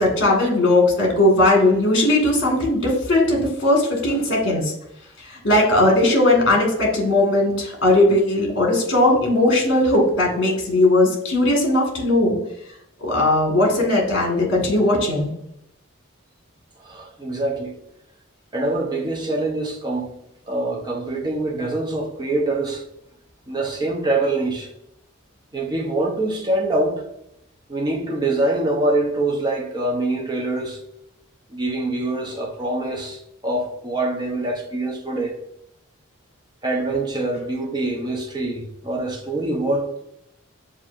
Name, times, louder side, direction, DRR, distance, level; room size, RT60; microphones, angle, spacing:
voice 1, 0.0-4.7 5.2-12.4 13.0-15.3, left 1 dB, 55° left, 1.5 m, -18 dB
voice 2, 16.8-17.8 18.5-20.1 20.5-22.8 23.5-24.7 25.5-27.0 27.7-30.8 31.5-35.4 36.6-40.0, right 2 dB, 20° right, 0.6 m, -24 dB
7.1 x 2.5 x 2.5 m
head